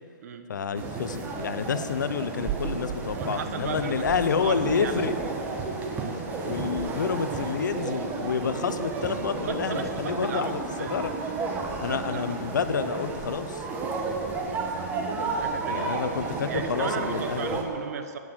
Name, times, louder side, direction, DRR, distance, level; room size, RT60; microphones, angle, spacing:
voice 1, 0.5-5.1 6.4-11.1 11.8-13.6 15.7-17.6, left 6 dB, 80° left, 11 dB, 0.9 m, -29 dB
sound 1, 0.7-17.6, right 4 dB, 20° right, 1.4 m, -32 dB
voice 2, 3.1-4.1 4.4-5.3 9.4-11.0 11.9-12.4 15.3-18.2, right 6 dB, 55° right, 8 dB, 1.2 m, -36 dB
15.5 x 9.3 x 6.3 m, 2.5 s
hypercardioid pair, 150°, 10 cm